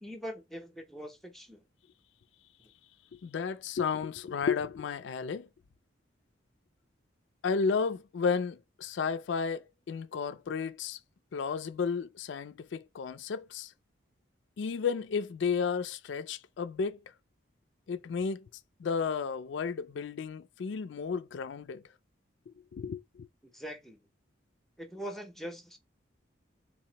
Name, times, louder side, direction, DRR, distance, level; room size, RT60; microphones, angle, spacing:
voice 1, 0.0-1.6 23.4-24.0 24.8-25.8, equal, ahead, 0.6 m, -42 dB
voice 2, 3.2-5.5 7.4-11.0 11.3-13.7 14.6-17.0 17.9-18.5 18.8-21.8 22.7-23.3, left 5 dB, 70° left, 0.4 m, -33 dB
3.9 x 2.8 x 2.8 m
head